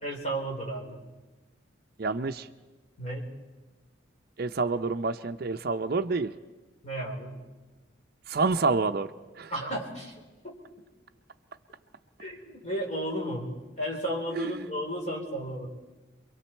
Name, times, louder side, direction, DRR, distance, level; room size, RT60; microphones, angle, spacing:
voice 1, 0.0-1.0 3.0-3.3 6.8-7.4 9.5-10.1 10.4-10.6 12.2-15.7, right 1 dB, 35° left, 0 dB, 3.8 m, -33 dB
voice 2, 2.0-2.5 4.4-6.3 8.3-9.1 9.4-9.5 14.4-14.7, right 3 dB, 50° right, 9 dB, 0.6 m, -28 dB
28.0 x 23.5 x 4.5 m, 1.2 s
head